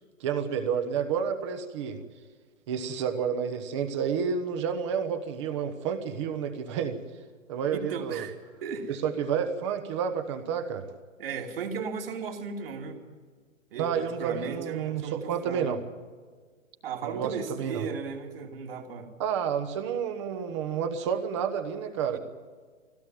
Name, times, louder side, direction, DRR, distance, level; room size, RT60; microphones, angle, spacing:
voice 1, 0.2-2.0 2.7-7.0 7.5-8.3 8.9-10.8 13.7-15.8 17.0-17.9 19.2-22.2, right 7 dB, 20° right, 7 dB, 1.2 m, -30 dB
voice 2, 7.7-8.4 8.6-8.9 11.2-13.0 13.7-15.8 16.8-19.1 22.1-22.2, right 5 dB, 45° right, 1 dB, 2.9 m, -36 dB
20.0 x 17.0 x 9.2 m, 1.6 s
hypercardioid pair, 160°, 39 cm